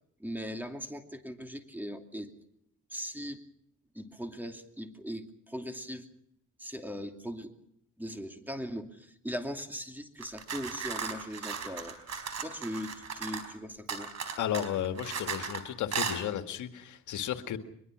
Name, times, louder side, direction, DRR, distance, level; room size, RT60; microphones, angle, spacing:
voice 1, 0.2-2.3 2.9-3.4 3.9-6.1 6.6-7.5 8.0-12.0 12.4-14.1, equal, 5° right, 6 dB, 2.7 m, -39 dB
sound 1, 10.2-13.5 13.9-15.6 15.9-16.2, right 6 dB, 60° right, 4.6 m, -36 dB
voice 2, 14.4-17.6, left 10 dB, 80° left, 8 dB, 1.8 m, -33 dB
23.5 x 21.5 x 6.1 m, 0.73 s
cardioid pair, 90°, 30 cm